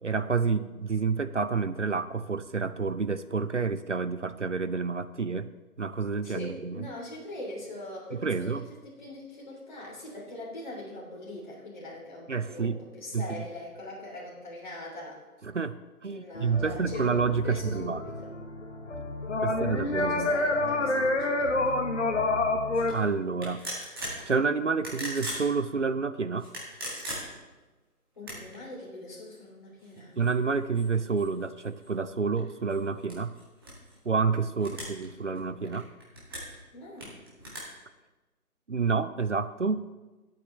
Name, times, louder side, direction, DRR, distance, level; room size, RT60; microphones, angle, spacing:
voice 1, 0.0-5.5 5.8-6.8 8.1-8.7 12.3-12.8 13.1-13.3 15.4-15.8 16.0-18.0 19.4-20.3 22.9-23.6 24.3-26.5 30.2-33.4 34.1-35.9 38.7-39.8, right 5 dB, 55° right, 13 dB, 0.6 m, -29 dB
voice 2, 6.2-15.2 16.1-17.1 17.4-18.3 19.5-21.8 28.2-30.2 34.5-34.8 36.7-37.2, left 1 dB, 30° left, -4 dB, 3.1 m, -42 dB
sound 1, 16.3-22.9, left 2 dB, 50° left, 1.1 m, -29 dB
sound 2, 22.7-23.0 23.4-24.2 24.7-25.5 26.4-27.5 28.1-28.6 29.3-29.4 29.8-31.9 32.4-34.0 34.6-35.0 35.3-36.5 37.0-37.6, right 1 dB, 15° right, 1.8 m, -39 dB
21.0 x 8.6 x 3.2 m, 1.2 s
figure-of-eight pair, 165°, 44 cm